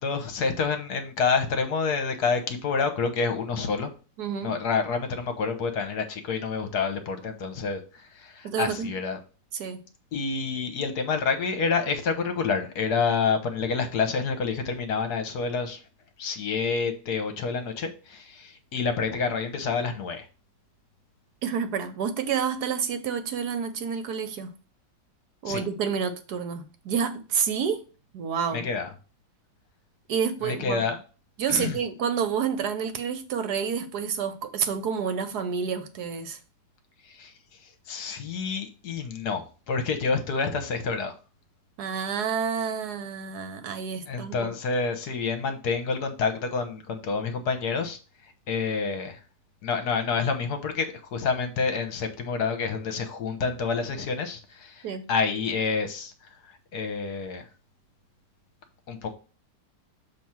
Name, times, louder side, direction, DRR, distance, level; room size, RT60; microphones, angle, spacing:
voice 1, 0.0-3.9 4.4-9.2 10.1-15.8 16.2-20.2 25.5-25.6 28.5-28.9 30.4-31.0 31.5-31.8 37.1-37.3 37.9-41.1 44.1-48.0 48.5-49.2 49.6-56.1 56.7-57.4 58.9-59.2, left 5 dB, 65° left, 1.4 m, -28 dB
voice 2, 4.2-4.5 8.4-8.9 9.5-9.8 21.4-24.5 25.4-27.8 28.1-28.7 30.1-30.9 31.4-36.4 41.8-44.5 54.8-55.0, right 7 dB, 70° right, 1.2 m, -29 dB
7.0 x 3.0 x 5.9 m
omnidirectional pair, 1.9 m